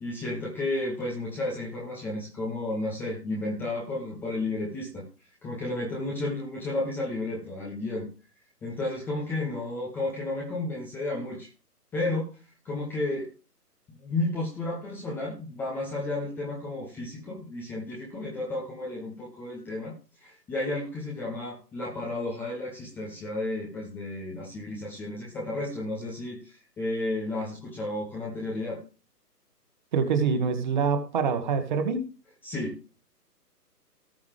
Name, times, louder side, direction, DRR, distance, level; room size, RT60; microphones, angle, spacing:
voice 1, 0.0-5.0 5.4-8.1 8.6-11.5 11.9-12.4 12.6-13.3 14.0-28.8 32.4-32.7, left 2 dB, 5° left, -3 dB, 1.1 m, -32 dB
voice 2, 29.9-32.0, right 5 dB, 30° right, 8 dB, 1.8 m, -25 dB
18.5 x 6.9 x 3.3 m, 0.33 s
figure-of-eight pair, 135°, 48 cm